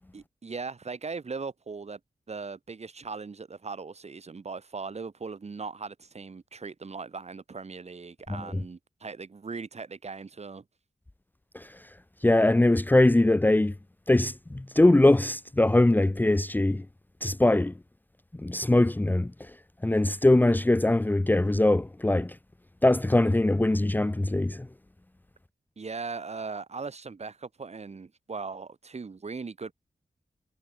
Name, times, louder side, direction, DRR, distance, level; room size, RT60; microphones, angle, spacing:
voice 1, 0.1-2.0 2.3-10.6 25.8-29.7, right 4 dB, 50° right, 6.8 m, -39 dB
voice 2, 12.2-13.7 14.1-16.8 17.2-17.7 18.4-19.3 19.8-22.3 22.8-24.7, left 1 dB, 15° left, 0.7 m, -22 dB
wide cardioid pair, 125°, 14 cm